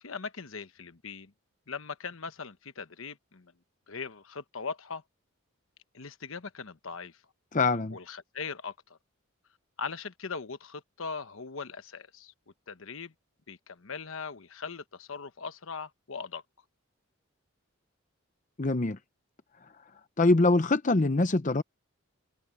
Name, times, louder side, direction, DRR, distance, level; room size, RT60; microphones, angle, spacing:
voice 1, 0.0-1.3 1.7-3.5 3.9-5.0 5.9-7.2 7.9-9.0 9.8-12.3 12.7-13.1 13.5-16.4, left 5 dB, 70° left, 1.1 m, -40 dB
voice 2, 7.5-8.0 18.6-19.0 20.2-21.6, left 2 dB, 35° left, 0.7 m, -24 dB
open air
head